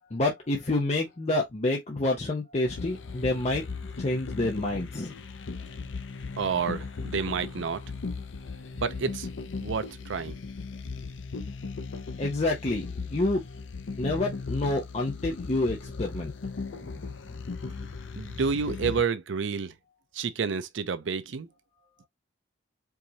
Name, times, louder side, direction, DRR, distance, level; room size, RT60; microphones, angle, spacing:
voice 1, 0.1-3.6 4.0-5.1 12.2-13.4 14.0-16.3 16.7-17.4, left 2 dB, 35° left, 0.7 m, -28 dB
sound 1, 2.7-19.0, left 4 dB, 90° left, 0.6 m, -37 dB
voice 2, 6.4-7.8 8.7-9.3 9.6-10.4 18.2-19.7 20.1-21.5, right 5 dB, 85° right, 0.5 m, -29 dB
4.7 x 2.7 x 2.8 m
head